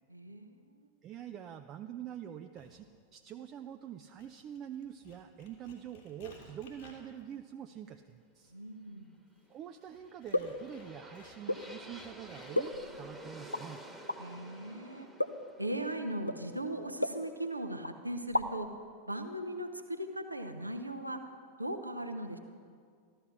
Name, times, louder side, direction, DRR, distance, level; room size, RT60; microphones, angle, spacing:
voice 1, 0.1-0.9 8.5-9.1 14.2-15.1 15.6-18.7 19.1-21.2 21.6-22.4, right 1 dB, 85° right, 6 dB, 0.9 m, -38 dB
voice 2, 1.0-2.9 3.1-8.5 9.5-13.8, right 10 dB, 30° right, 6 dB, 0.5 m, -45 dB
sound 1, 2.6-2.8 3.5-3.9 4.2-12.7, left 4 dB, 55° left, 3.1 m, -58 dB
sound 2, 9.9-17.8, right 1 dB, 5° right, 1.4 m, -51 dB
sound 3, 10.3-10.6 11.5-11.7 12.5-13.1 13.5-13.6 14.1-14.2 15.2-15.5 16.3-16.4 17.0-17.6 17.8-17.9 18.2-18.7, left 1 dB, 85° left, 0.6 m, -33 dB
14.0 x 12.5 x 5.7 m, 2.1 s
figure-of-eight pair, 90°, 0 cm